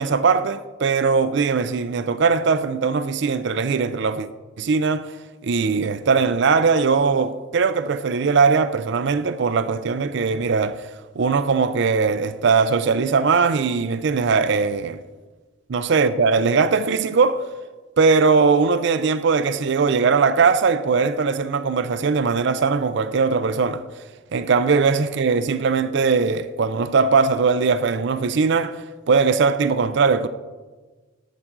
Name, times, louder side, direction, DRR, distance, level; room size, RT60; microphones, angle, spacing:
voice 1, 0.0-4.3 4.6-5.1 5.4-10.9 11.2-15.0 15.7-17.4 18.0-23.8 24.3-30.3, right 5 dB, 60° right, 0.4 m, -20 dB
12.0 x 7.7 x 4.6 m
head